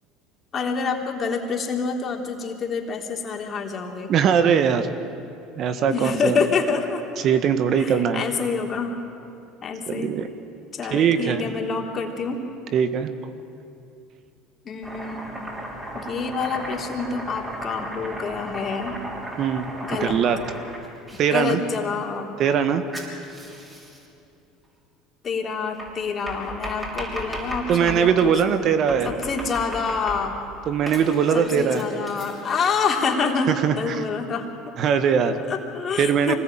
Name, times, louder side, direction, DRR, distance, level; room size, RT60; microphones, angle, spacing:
voice 1, 0.5-4.1 5.9-7.0 7.7-9.0 9.6-10.2 10.7-12.4 14.7-15.6 15.9-19.0 19.8-20.2 21.3-22.4 25.2-28.7 29.0-30.4 31.3-34.5 35.3-36.4, left 5 dB, 40° left, 2 dB, 3.5 m, -27 dB
voice 2, 4.1-4.9 5.6-6.4 7.2-8.2 9.9-10.2 10.9-11.4 12.7-13.1 19.4-19.7 20.0-20.4 21.2-21.6 22.4-22.8 27.7-29.1 30.7-31.8 33.5-34.0 34.8-35.4 36.0-36.3, right 7 dB, 50° right, 9 dB, 1.6 m, -21 dB
Domestic sounds home sounds, 14.8-21.2 22.9-24.0 25.8-28.1 28.9-30.4 30.9-32.6, right 1 dB, 15° right, 6.3 m, -35 dB
24.5 x 19.5 x 9.2 m, 2.7 s
supercardioid pair, 90°, 0 cm